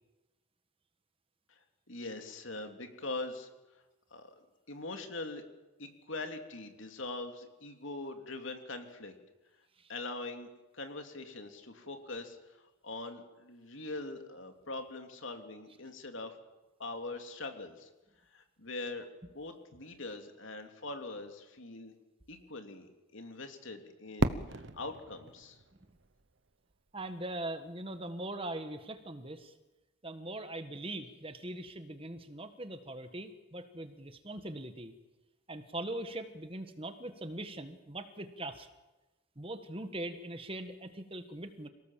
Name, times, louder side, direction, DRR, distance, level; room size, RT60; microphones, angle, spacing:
voice 1, 1.9-3.8 4.1-4.3 4.7-5.4 5.8-9.1 9.9-16.4 16.8-17.9 18.3-21.9 22.3-25.6, left 2 dB, 65° left, 5 dB, 2.9 m, -42 dB
Fireworks, 24.2-27.1, right 2 dB, 55° right, 1.1 m, -36 dB
voice 2, 26.9-29.5 30.0-34.9 35.5-38.7 39.4-41.7, right 1 dB, 25° right, 9 dB, 1.5 m, -41 dB
27.5 x 18.5 x 7.5 m, 1.1 s
head